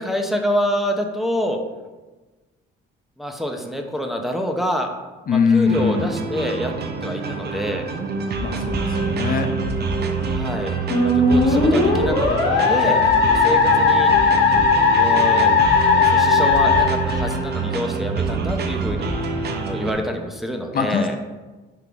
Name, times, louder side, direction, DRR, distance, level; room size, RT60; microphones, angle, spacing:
voice 1, 0.0-1.6 3.2-4.9 5.3-7.8 10.3-10.8 11.0-13.0 13.3-14.1 14.9-15.5 16.0-19.2 19.5-21.2, equal, ahead, 3 dB, 0.8 m, -26 dB
voice 2, 5.3-6.1 8.4-9.5 20.7-21.1, left 6 dB, 45° left, 5 dB, 0.6 m, -21 dB
sound 1, 5.6-19.9, right 4 dB, 55° right, 0.8 m, -26 dB
Musical instrument, 10.9-17.8, left 4 dB, 80° left, 1.1 m, -17 dB
5.5 x 3.6 x 4.8 m, 1.2 s
cardioid pair, 90°, 20 cm